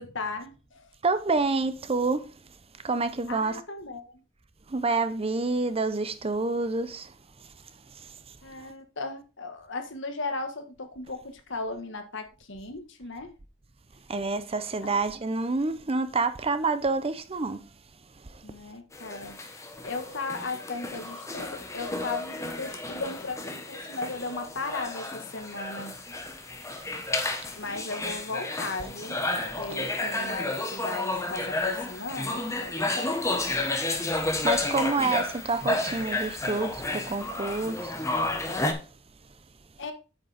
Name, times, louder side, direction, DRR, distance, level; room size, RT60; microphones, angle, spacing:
voice 1, 0.0-0.8 3.3-4.2 8.4-13.3 14.8-14.9 18.4-25.9 27.6-29.2 29.6-33.4 39.8-39.9, left 3 dB, 65° left, 1.6 m, -36 dB
voice 2, 1.0-2.3 2.8-3.6 4.7-7.1 14.1-17.7 18.3-18.4 34.4-38.0, right 3 dB, 30° right, 0.7 m, -28 dB
sound 1, 18.9-38.7, left 2 dB, 15° left, 1.2 m, -31 dB
8.7 x 6.5 x 3.5 m
head